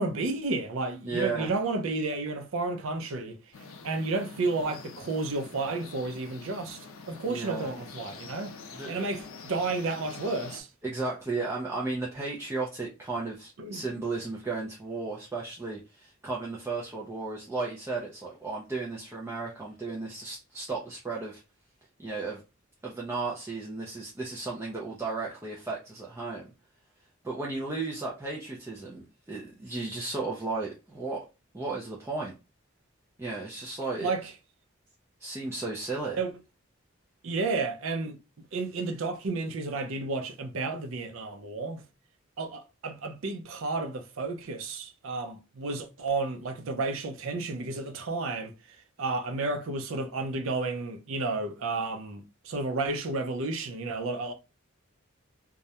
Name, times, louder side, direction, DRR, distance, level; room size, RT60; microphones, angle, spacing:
voice 1, 0.0-3.4 3.8-8.6 8.9-10.7 13.6-13.8 34.0-34.3 36.2-36.3 37.2-38.2 38.5-41.8 42.4-48.5 49.0-54.3, right 3 dB, 70° right, 0.5 m, -32 dB
voice 2, 1.0-1.5 7.3-7.7 8.7-9.1 10.8-21.4 22.0-22.4 22.8-26.4 27.2-31.2 31.5-32.3 33.2-34.1 35.2-36.2, right 3 dB, 10° right, 0.4 m, -34 dB
sound 1, 3.5-10.6, left 4 dB, 70° left, 0.4 m, -46 dB
2.3 x 2.1 x 2.7 m
head